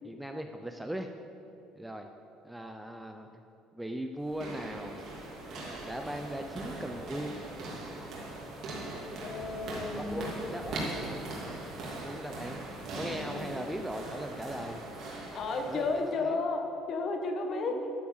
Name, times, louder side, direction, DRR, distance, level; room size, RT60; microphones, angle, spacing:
voice 1, 0.0-1.1 1.8-2.1 2.4-3.3 3.7-5.0 5.8-7.4 10.0-11.0 11.9-12.6 12.9-14.8 15.7-16.4 17.4-17.9, right 1 dB, 5° right, 5 dB, 0.5 m, -39 dB
sound 1, 4.2-16.1, right 2 dB, 45° right, 2.7 m, -40 dB
voice 2, 9.2-10.6 13.1-13.6 15.3-17.8, left 3 dB, 40° left, 5 dB, 1.3 m, -33 dB
11.0 x 9.6 x 7.3 m, 3.0 s
cardioid pair, 170°, 0 cm